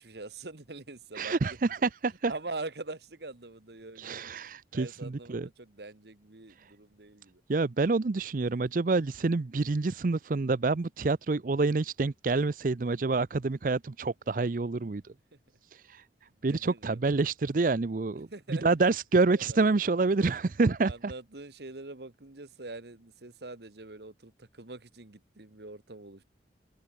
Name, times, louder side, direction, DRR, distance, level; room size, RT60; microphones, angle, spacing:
voice 1, 0.0-1.4 1.8-1.9 2.3-4.3 4.7-7.4 16.5-17.0 18.3-18.7 19.3-20.3 20.8-26.2, right 2 dB, 70° right, 1.6 m, -44 dB
voice 2, 1.1-2.3 4.0-5.5 6.6-6.7 7.5-15.0 15.7-16.0 16.4-21.1, right 3 dB, 50° right, 0.5 m, -27 dB
open air
head